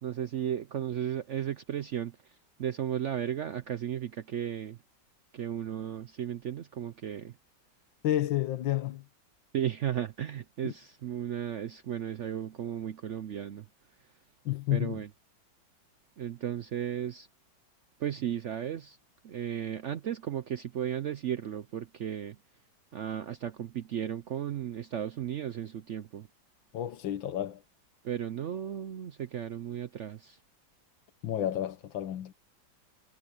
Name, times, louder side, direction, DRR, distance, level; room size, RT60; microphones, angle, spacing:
voice 1, 0.0-2.2 2.6-4.8 5.3-7.3 9.5-13.7 14.7-15.1 16.2-17.3 18.0-19.0 19.2-22.4 22.9-26.3 28.0-30.4, right 10 dB, 80° right, 0.6 m, -35 dB
voice 2, 8.0-9.0 10.6-10.7 14.5-15.0 26.7-27.6 31.2-32.3, left 12 dB, 85° left, 1.7 m, -30 dB
omnidirectional pair, 2.0 m